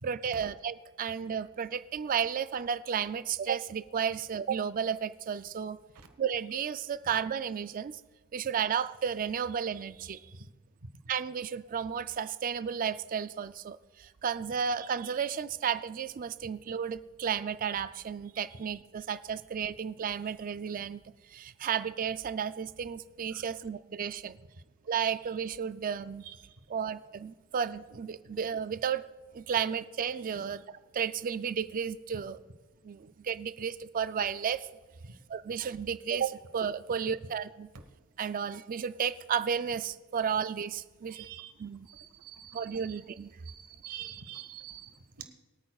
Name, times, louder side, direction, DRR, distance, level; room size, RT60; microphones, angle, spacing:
voice 1, 0.0-5.8 6.2-8.0 8.3-10.3 11.1-21.0 21.3-24.4 24.9-26.3 26.7-29.0 29.3-30.6 30.9-32.4 32.8-34.7 35.3-37.7 38.2-41.3 41.6-41.9 42.5-43.3, right 7 dB, 40° right, 14 dB, 0.4 m, -33 dB
voice 2, 26.2-26.5 30.3-30.5 35.0-35.1 41.1-41.5 41.8-42.9 43.4-45.2, right 9 dB, 90° right, 7 dB, 1.3 m, -46 dB
23.0 x 9.0 x 2.4 m, 1.3 s
head